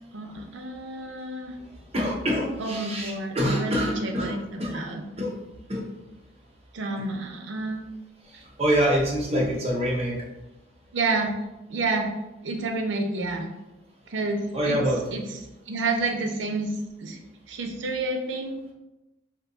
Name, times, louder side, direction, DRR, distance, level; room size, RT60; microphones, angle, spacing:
voice 1, 0.1-1.5 2.6-5.0 6.7-7.8 8.3-8.4 10.9-11.3 11.7-12.1 12.4-13.5 14.1-14.8 15.1-15.2 15.7-17.2 17.5-18.6, right 3 dB, 85° right, 3 dB, 0.5 m, -29 dB
voice 2, 1.9-4.8 5.2-5.3 5.7-5.8 8.2-10.2 14.5-15.0, equal, 35° right, -3 dB, 0.7 m, -26 dB
2.6 x 2.2 x 3.8 m, 0.98 s
head